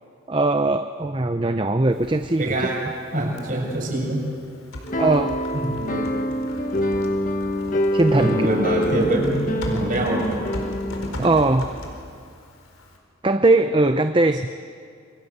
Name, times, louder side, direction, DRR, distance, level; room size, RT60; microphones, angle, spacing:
voice 1, 0.3-2.7 4.9-5.4 7.9-8.5 11.2-11.7 13.2-14.5, right 2 dB, 25° right, 8 dB, 0.6 m, -20 dB
Typing, 1.9-13.0, equal, 90° left, 4.6 m, -38 dB
voice 2, 2.4-2.8 3.1-4.2 5.5-6.1 8.2-10.3, right 1 dB, 40° right, 0 dB, 6.5 m, -24 dB
sound 1, 4.8-11.1, equal, 40° left, 1.4 m, -25 dB
29.0 x 23.5 x 8.1 m, 2.3 s
head